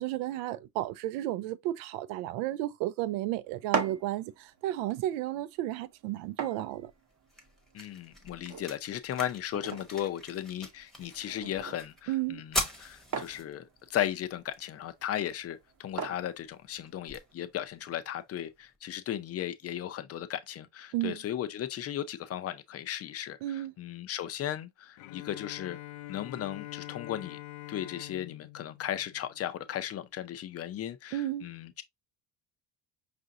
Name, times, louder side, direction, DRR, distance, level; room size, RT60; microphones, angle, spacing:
voice 1, 0.0-6.9 12.1-12.4 20.9-21.2 23.4-23.7 31.1-31.5, right 14 dB, 80° right, 0.6 m, -33 dB
sound 1, 3.4-17.3, right 6 dB, 40° right, 0.9 m, -42 dB
sound 2, 6.8-18.8, equal, ahead, 0.9 m, -43 dB
voice 2, 7.7-25.8 26.1-27.4 27.7-31.8, left 11 dB, 35° left, 0.5 m, -36 dB
Bowed string instrument, 25.0-29.9, left 16 dB, 75° left, 0.6 m, -45 dB
4.9 x 2.6 x 2.6 m
supercardioid pair, 105°, 46 cm